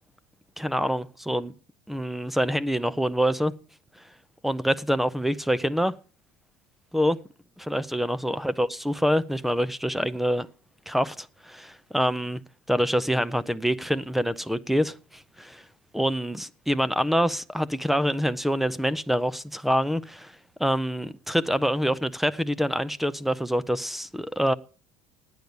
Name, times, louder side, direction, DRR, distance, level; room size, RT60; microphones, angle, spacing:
voice 1, 0.6-1.5 1.9-3.5 4.4-6.0 6.9-7.2 7.6-10.5 10.9-12.4 12.7-15.6 15.9-20.3 20.6-24.5, equal, ahead, 0.5 m, -26 dB
11.5 x 9.4 x 6.8 m
cardioid pair, 140°, 10 cm